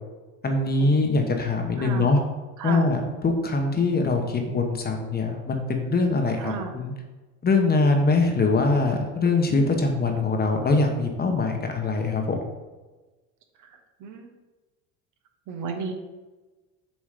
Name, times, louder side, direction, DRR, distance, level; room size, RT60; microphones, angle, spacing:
voice 1, 0.4-2.2 2.6-6.9 7.4-12.4, left 3 dB, 25° left, 3 dB, 1.1 m, -23 dB
voice 2, 1.8-2.1 2.6-2.8 6.4-6.7 13.6-14.3 15.5-15.9, right 5 dB, 55° right, 5 dB, 1.1 m, -34 dB
7.3 x 3.1 x 5.0 m, 1.2 s
supercardioid pair, 95°, 35 cm